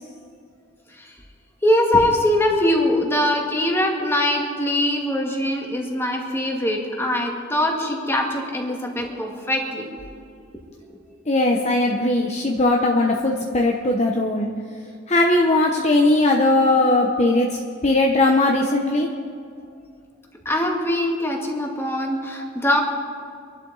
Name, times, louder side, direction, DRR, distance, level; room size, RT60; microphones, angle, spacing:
voice 1, 1.6-9.9 10.9-11.0 16.8-17.1 20.5-22.8, left 1 dB, 10° left, 0 dB, 2.0 m, -22 dB
voice 2, 11.3-14.5 15.1-17.6 17.8-19.1, left 2 dB, 35° left, 0 dB, 1.0 m, -19 dB
26.0 x 11.5 x 4.1 m, 2.3 s
head